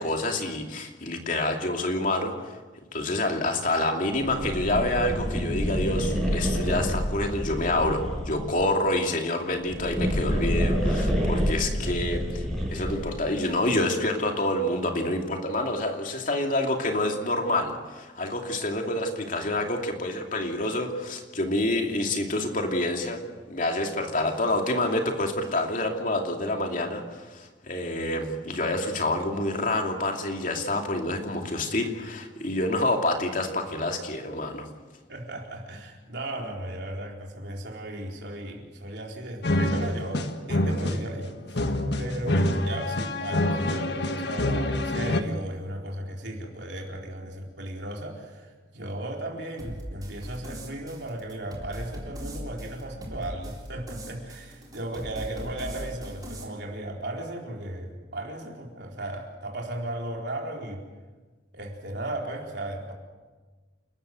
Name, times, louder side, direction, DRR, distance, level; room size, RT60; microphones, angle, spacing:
voice 1, 0.0-2.6 2.9-12.2 12.7-23.2 23.5-34.7, left 1 dB, 45° left, 3 dB, 2.7 m, -27 dB
sound 1, 4.1-8.6 9.5-13.2, equal, ahead, 6.3 m, -28 dB
voice 2, 11.8-12.7 35.1-41.6 42.0-60.8 61.5-62.9, right 1 dB, 65° right, 0 dB, 4.2 m, -36 dB
sound 2, 39.4-45.2, left 1 dB, 60° left, 1.5 m, -26 dB
sound 3, 49.6-56.4, equal, 20° right, 3.8 m, -40 dB
29.5 x 13.5 x 7.9 m, 1.3 s
head